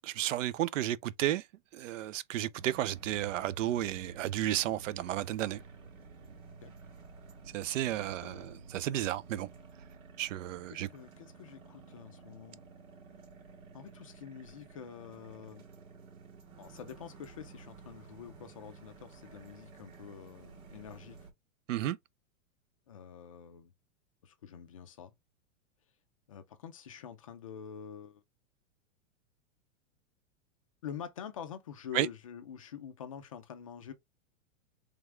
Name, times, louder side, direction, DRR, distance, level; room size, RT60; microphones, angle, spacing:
voice 1, 0.0-1.4 1.7-5.6 7.5-9.5 10.2-10.9 21.7-22.0 31.9-32.1, right 13 dB, 65° right, 0.6 m, -32 dB
sound 1, 2.5-21.3, right 5 dB, 85° right, 2.1 m, -52 dB
voice 2, 7.8-8.7 10.7-12.6 13.7-15.7 16.6-21.3 22.9-23.7 24.2-25.1 26.3-28.2 30.8-33.9, left 8 dB, 30° left, 0.3 m, -47 dB
3.5 x 3.4 x 3.1 m
supercardioid pair, 170°, 40 cm